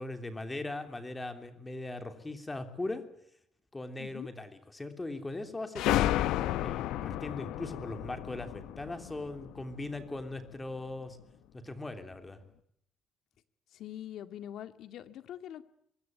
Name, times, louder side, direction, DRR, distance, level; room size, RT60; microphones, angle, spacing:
voice 1, 0.0-3.0 3.7-6.1 6.6-11.2 11.5-12.4, left 2 dB, 10° left, 7 dB, 3.2 m, -39 dB
voice 2, 4.0-4.3 13.7-15.6, left 11 dB, 55° left, 10 dB, 2.1 m, -43 dB
sound 1, 5.7-10.2, left 13 dB, 80° left, 1.1 m, -32 dB
25.0 x 22.5 x 9.4 m, 0.72 s
cardioid pair, 170°, 0 cm